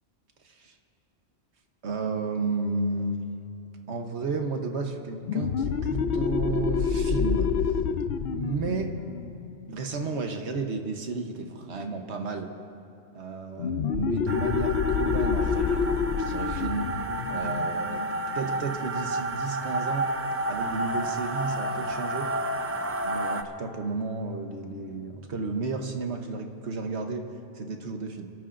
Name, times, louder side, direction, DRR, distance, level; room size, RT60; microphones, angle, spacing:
voice 1, 1.8-3.3 3.9-7.5 8.3-8.9 9.7-12.5 13.1-16.9 17.3-18.0 18.3-20.0 20.5-22.3 23.0-27.3 27.5-28.3, right 3 dB, 80° right, 4 dB, 1.3 m, -32 dB
sound 1, 5.2-10.6 13.6-18.9, left 6 dB, 70° left, 0.8 m, -28 dB
sound 2, 14.3-23.4, right 2 dB, 20° right, 0.4 m, -31 dB
28.5 x 14.0 x 2.5 m, 2.7 s
omnidirectional pair, 1.1 m